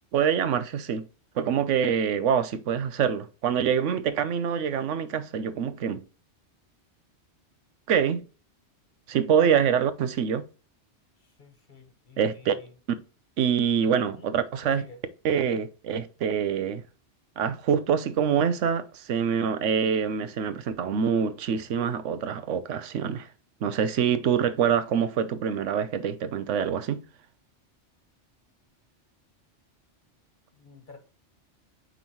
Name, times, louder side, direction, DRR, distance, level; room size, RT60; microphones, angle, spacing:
voice 1, 0.1-1.1 1.3-6.0 7.9-8.2 9.1-10.4 12.2-12.6 13.4-14.8 15.2-16.8 17.4-23.3 23.6-27.0, right 7 dB, 90° right, 1.0 m, -25 dB
voice 2, 11.2-12.7 14.1-14.3 14.8-15.0 30.5-31.0, left 3 dB, 45° left, 1.4 m, -51 dB
9.0 x 3.7 x 2.9 m
omnidirectional pair, 1.2 m